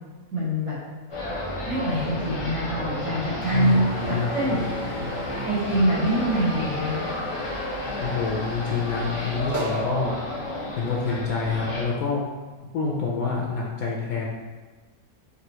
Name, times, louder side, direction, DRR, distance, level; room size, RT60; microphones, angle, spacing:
voice 1, 0.3-0.8 1.7-4.6 5.4-7.0, right 1 dB, 60° right, -9 dB, 1.6 m, -25 dB
sound 1, 1.1-11.8, left 1 dB, 35° left, 0.5 m, -31 dB
voice 2, 3.5-4.3 8.0-10.1 10.8-12.3 12.7-14.3, left 4 dB, 70° left, -3 dB, 1.0 m, -27 dB
sound 2, 3.6-9.8, right 1 dB, 20° right, 0.6 m, -41 dB
4.7 x 2.8 x 2.9 m, 1.3 s
omnidirectional pair, 1.6 m